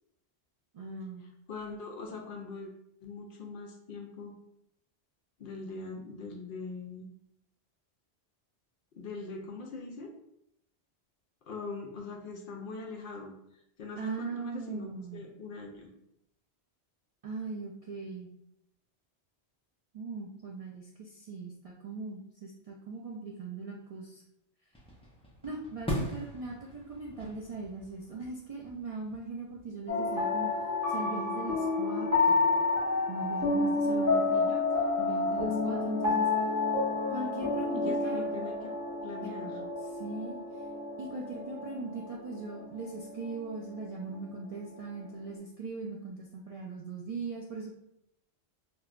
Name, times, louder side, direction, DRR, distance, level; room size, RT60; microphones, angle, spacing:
voice 1, 0.7-1.2 14.0-15.2 17.2-18.3 19.9-24.2 25.4-30.6 30.9-32.5 33.1-34.6 35.0-36.3 37.1-38.3 39.2-39.3 40.0-40.4 41.0-47.8, right 3 dB, 60° right, -2 dB, 0.3 m, -40 dB
voice 2, 1.5-2.7 3.0-4.3 5.4-7.1 8.9-10.1 11.5-13.3 13.8-15.9 33.8-34.4 37.7-38.7 39.0-39.7, left 3 dB, 60° left, 1 dB, 0.7 m, -42 dB
sound 1, 24.7-30.0, equal, 10° left, 0.4 m, -41 dB
sound 2, 29.9-44.1, left 3 dB, 15° right, 0.8 m, -30 dB
4.6 x 2.2 x 2.4 m, 0.78 s
omnidirectional pair, 1.1 m